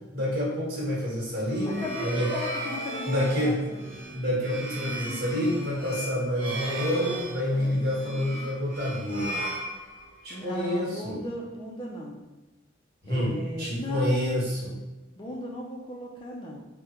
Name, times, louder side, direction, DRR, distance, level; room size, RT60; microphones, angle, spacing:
voice 1, 0.1-2.3 3.1-3.6 4.1-9.4 10.2-11.2 13.0-14.7, equal, 50° right, -6 dB, 1.2 m, -28 dB
sound 1, 1.3-10.4, right 1 dB, 65° right, 0.7 m, -35 dB
voice 2, 1.8-3.8 7.5-7.8 10.3-12.2 13.1-14.2 15.2-16.6, left 1 dB, 25° left, -2 dB, 0.4 m, -37 dB
3.6 x 2.1 x 2.8 m, 1.1 s
head